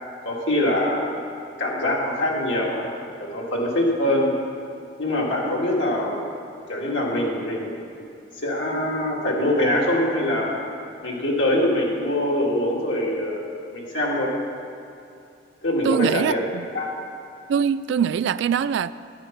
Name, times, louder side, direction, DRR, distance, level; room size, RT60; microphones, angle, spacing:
voice 1, 0.2-1.1 1.6-2.9 3.2-4.3 5.0-6.2 6.7-7.8 8.4-10.5 11.0-13.4 13.7-14.3 15.6-16.4 16.7-16.9, left 1 dB, 75° left, -3 dB, 2.2 m, -23 dB
voice 2, 15.8-16.7 17.5-19.0, right 7 dB, 65° right, 15 dB, 0.3 m, -23 dB
10.0 x 9.9 x 5.8 m, 2.6 s
head